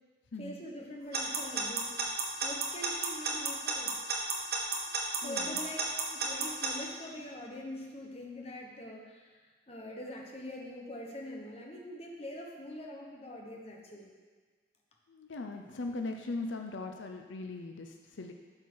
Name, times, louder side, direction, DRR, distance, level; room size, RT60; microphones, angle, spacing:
voice 1, 0.4-2.0 2.4-4.0 5.2-5.8 6.1-9.4 9.7-14.1, left 1 dB, 30° left, -1 dB, 1.1 m, -44 dB
Alarm / Clock, 1.1-6.7, right 4 dB, 55° right, 1.2 m, -31 dB
voice 2, 5.2-5.6 15.1-18.3, left 3 dB, 85° left, 4 dB, 0.6 m, -39 dB
12.0 x 4.5 x 4.6 m, 1.4 s
head